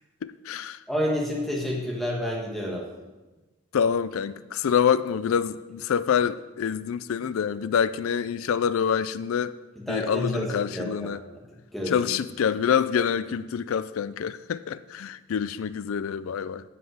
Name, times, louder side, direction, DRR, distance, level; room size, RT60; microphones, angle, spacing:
voice 1, 0.2-0.8 3.7-9.5 9.9-11.2 11.9-16.6, left 7 dB, 85° left, 0.4 m, -26 dB
voice 2, 0.9-2.9 9.9-11.1 11.7-12.1, left 1 dB, ahead, 1.8 m, -29 dB
10.0 x 5.7 x 7.9 m
head